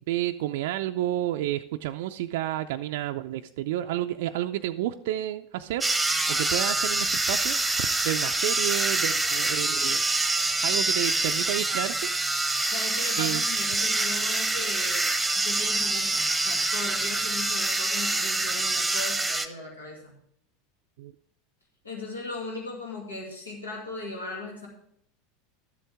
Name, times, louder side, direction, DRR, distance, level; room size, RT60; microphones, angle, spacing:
voice 1, 0.1-5.9 6.3-10.0 10.6-12.1 13.2-13.4 21.0-21.1, right 13 dB, 65° right, 6 dB, 0.4 m, -30 dB
sound 1, 5.8-19.5, right 2 dB, 5° right, 0.9 m, -26 dB
voice 2, 12.7-15.2 15.4-20.1 21.8-24.7, left 3 dB, 85° left, -1 dB, 2.2 m, -38 dB
12.0 x 7.8 x 3.4 m, 0.70 s
hypercardioid pair, 85°, 0 cm